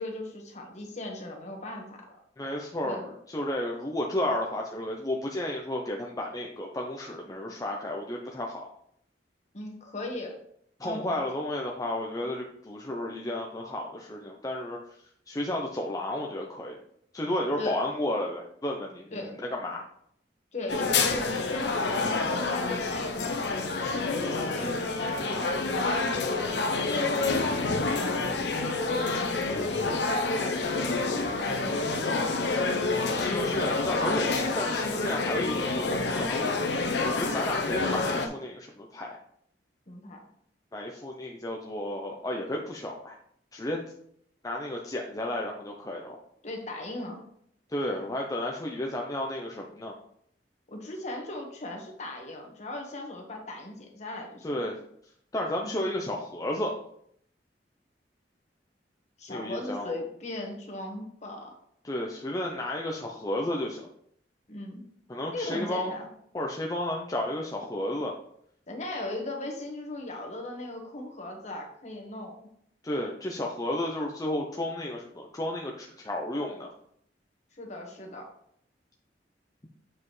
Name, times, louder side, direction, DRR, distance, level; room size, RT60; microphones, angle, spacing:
voice 1, 0.0-2.2 2.8-3.1 9.5-10.4 10.8-11.2 17.6-17.8 19.1-19.3 20.5-23.3 23.8-26.4 26.8-32.6 39.9-40.2 46.4-47.2 50.7-54.5 59.2-61.5 64.5-64.8 65.3-66.0 68.7-72.4 77.5-78.3, left 2 dB, 40° left, 1 dB, 1.4 m, -37 dB
voice 2, 2.4-8.7 10.8-14.8 15.3-16.8 17.1-19.8 33.1-36.6 37.0-39.2 40.7-43.2 43.5-43.8 44.4-46.2 47.7-49.9 54.4-54.8 55.3-56.8 59.3-59.9 61.8-63.9 65.1-65.9 66.3-68.1 72.8-76.7, left 1 dB, 20° left, 0 dB, 0.6 m, -32 dB
sound 1, 20.7-38.3, left 3 dB, 75° left, 0.8 m, -28 dB
7.5 x 4.9 x 3.2 m, 0.68 s
head